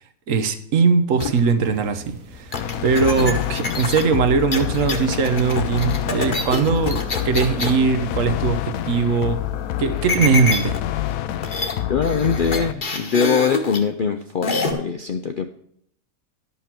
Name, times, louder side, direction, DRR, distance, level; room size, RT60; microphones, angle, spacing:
voice 1, 0.3-9.4 9.8-10.7, right 5 dB, 65° right, 10 dB, 1.2 m, -20 dB
sound 1, 1.2-1.5 2.5-7.8 10.1-10.8 11.1-11.2 11.4-11.7 12.0-13.8 14.4-14.7, left 3 dB, 40° left, 1.2 m, -26 dB
sound 2, 1.6-10.0, equal, 85° right, 1.7 m, -40 dB
sound 3, 2.5-12.7, left 11 dB, 80° left, 1.0 m, -27 dB
voice 2, 11.9-15.5, left 6 dB, 60° left, 7 dB, 0.5 m, -22 dB
11.0 x 5.6 x 5.9 m, 0.66 s
omnidirectional pair, 1.5 m